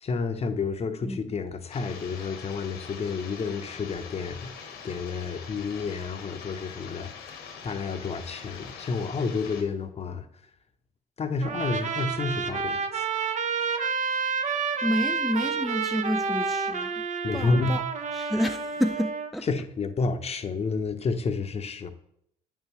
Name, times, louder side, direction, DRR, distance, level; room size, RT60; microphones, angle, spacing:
voice 1, 0.0-4.5 4.8-7.1 7.6-10.3 11.2-13.1 17.2-18.1 19.4-21.9, left 4 dB, 40° left, 0.8 m, -30 dB
sound 1, 1.7-9.6, left 6 dB, 80° left, 1.1 m, -43 dB
Trumpet, 11.4-19.3, right 5 dB, 50° right, 0.8 m, -29 dB
voice 2, 14.8-17.0 17.3-17.8 18.1-19.5, equal, ahead, 0.4 m, -29 dB
8.7 x 5.5 x 3.1 m
supercardioid pair, 60°, 16 cm